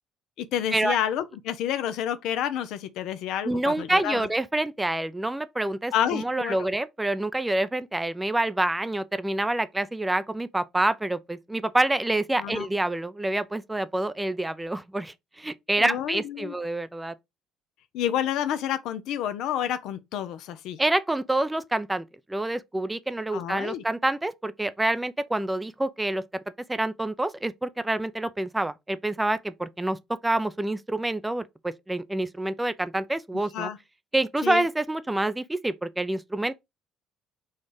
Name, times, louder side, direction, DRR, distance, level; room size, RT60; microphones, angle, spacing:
voice 1, 0.4-4.3 5.9-6.6 12.4-12.7 15.8-16.5 17.9-20.8 23.3-23.8 33.5-33.8 34.4-34.6, left 10 dB, 70° left, 0.6 m, -29 dB
voice 2, 3.4-17.1 20.8-26.2 26.7-30.0 30.2-33.7 34.1-36.6, right 2 dB, 10° right, 0.5 m, -27 dB
4.3 x 2.4 x 4.7 m
supercardioid pair, 70°, 0 cm